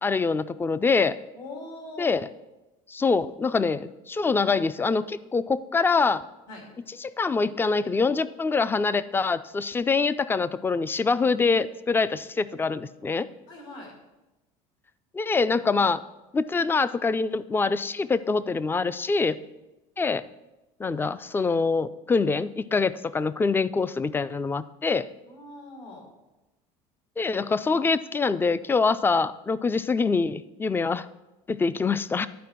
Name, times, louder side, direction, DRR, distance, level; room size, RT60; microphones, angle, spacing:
voice 1, 0.0-1.2 2.0-2.3 2.9-6.2 7.0-13.3 15.1-16.0 16.3-19.4 20.0-20.2 20.8-25.1 27.2-31.1 31.5-32.3, left 4 dB, 15° left, 16 dB, 0.3 m, -25 dB
voice 2, 1.3-2.2 6.5-6.6 13.5-13.9 25.3-26.1, left 2 dB, 80° left, 0 dB, 3.3 m, -41 dB
11.5 x 4.6 x 5.8 m, 1.0 s
supercardioid pair, 105°, 16 cm